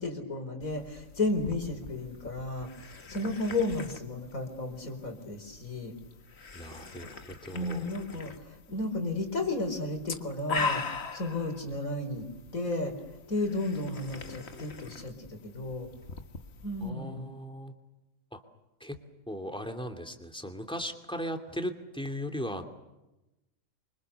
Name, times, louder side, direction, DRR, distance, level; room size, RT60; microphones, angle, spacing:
voice 1, 0.0-2.7 3.1-5.9 7.5-10.8 11.1-12.2 12.5-12.9 13.3-15.9 16.6-17.3, left 2 dB, 85° left, 5 dB, 4.9 m, -33 dB
sound 1, 0.6-16.9, left 4 dB, 50° left, 1.8 m, -41 dB
voice 2, 6.5-7.9 16.8-17.7 18.3-18.4 18.8-19.0 19.3-22.6, equal, 5° left, 5 dB, 2.6 m, -37 dB
27.5 x 25.0 x 7.0 m, 0.98 s
omnidirectional pair, 1.4 m